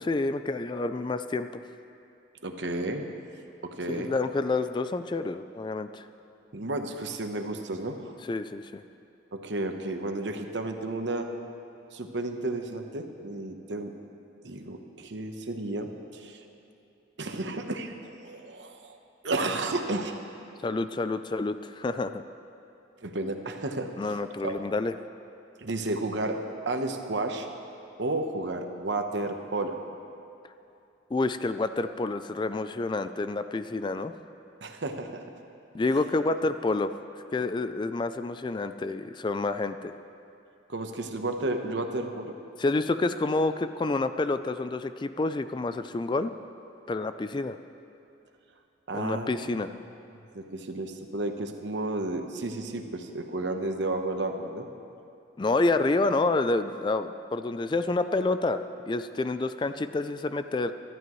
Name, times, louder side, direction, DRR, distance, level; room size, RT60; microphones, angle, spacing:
voice 1, 0.1-1.6 3.9-6.1 8.3-8.8 20.6-22.2 24.0-24.9 31.1-34.1 35.7-36.9 37.3-39.9 42.6-46.3 46.9-47.6 48.9-49.7 55.4-60.7, left 3 dB, 25° left, 11 dB, 0.3 m, -28 dB
voice 2, 2.4-3.0 3.6-4.1 6.5-8.1 9.3-11.3 11.9-13.9 14.4-16.5 17.2-19.0 19.2-20.1 23.0-23.9 24.4-24.6 25.6-27.5 28.0-29.8 34.6-35.2 40.7-42.3 48.9-49.6 50.3-54.7, right 2 dB, 70° right, 5 dB, 1.0 m, -32 dB
23.5 x 12.0 x 3.1 m, 2.7 s
head